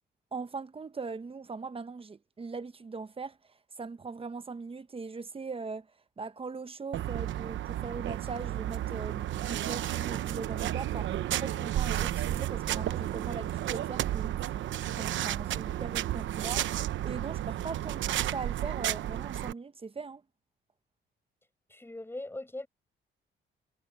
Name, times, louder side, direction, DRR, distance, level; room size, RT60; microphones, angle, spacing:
voice 1, 0.3-20.2, right 4 dB, 30° right, 1.1 m, -40 dB
sound 1, 6.9-19.5, right 13 dB, 75° right, 0.9 m, -32 dB
voice 2, 21.7-22.7, left 2 dB, 10° left, 5.3 m, -40 dB
cardioid pair, 90°, 20 cm